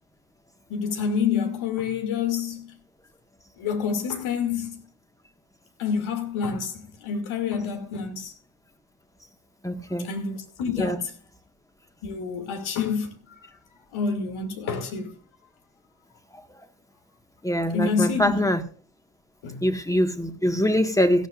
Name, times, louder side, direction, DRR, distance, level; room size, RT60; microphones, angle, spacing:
voice 1, 0.7-2.7 3.6-4.8 5.8-8.3 10.0-11.1 12.0-13.4 13.9-15.2 17.7-18.4 19.4-19.7, left 6 dB, 85° left, 2.6 m, -28 dB
voice 2, 9.6-10.1 10.8-11.0 17.4-18.6 19.6-21.3, equal, 5° left, 1.6 m, -23 dB
17.0 x 12.5 x 2.5 m
cardioid pair, 85°, 47 cm